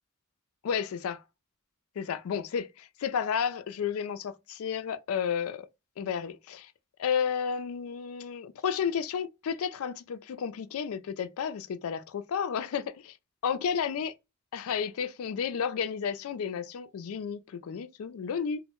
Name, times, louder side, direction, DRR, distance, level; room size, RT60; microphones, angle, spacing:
voice 1, 0.6-1.2 2.0-5.7 6.0-6.7 7.0-13.1 13.4-14.1 14.5-18.6, left 7 dB, 75° left, 0.3 m, -32 dB
2.1 x 2.1 x 2.9 m
head